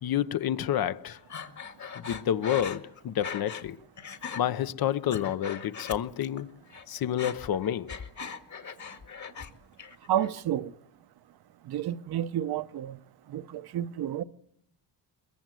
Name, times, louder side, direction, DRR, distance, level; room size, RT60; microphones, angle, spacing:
voice 1, 0.0-1.2 1.9-3.8 4.4-6.5 6.9-8.0, left 10 dB, 60° left, 0.9 m, -29 dB
Breathing, 1.3-3.7 4.0-4.4 4.9-6.4 6.7-9.5 9.8-10.4, left 6 dB, 45° left, 1.9 m, -40 dB
voice 2, 10.1-10.7 11.7-13.0 13.3-14.2, right 11 dB, 65° right, 0.9 m, -30 dB
22.5 x 22.0 x 7.7 m
cardioid pair, 110°, 40 cm